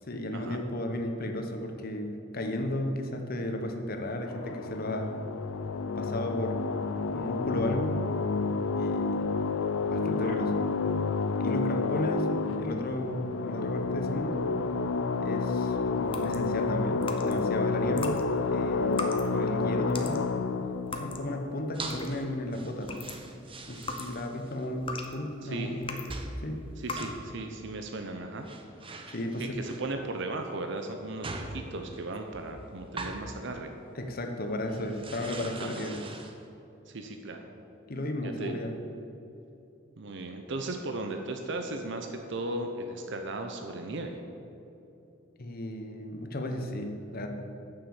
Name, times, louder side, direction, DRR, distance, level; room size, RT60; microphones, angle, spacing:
voice 1, 0.1-5.1 6.0-6.7 7.1-8.0 8.8-9.2 9.8-10.6 11.4-12.3 12.6-14.5 15.2-18.2 18.5-20.2 21.0-22.9 23.7-26.0 26.4-26.6 29.1-29.6 33.9-36.0 37.9-38.7 45.4-47.3, left 1 dB, 50° left, 4 dB, 1.1 m, -34 dB
sound 1, 4.3-22.4, left 4 dB, 85° left, 0.5 m, -30 dB
voice 2, 10.1-10.5 25.4-25.7 26.8-28.5 29.4-33.7 35.6-35.8 36.9-37.5 38.2-38.6 40.0-44.2, right 2 dB, 65° right, 5 dB, 0.7 m, -36 dB
sound 2, 16.0-17.5 17.9-22.3 22.7-26.2 26.8-27.2, left 3 dB, 25° left, 0.9 m, -39 dB
sound 3, 21.7-22.3 22.5-24.7 25.0-25.1 26.1-26.4 26.7-27.4 28.1-28.2 28.4-30.1 30.8-33.3 33.8-34.0 34.4-36.5, right 2 dB, 30° right, 0.9 m, -42 dB
9.3 x 7.0 x 7.2 m, 2.9 s
head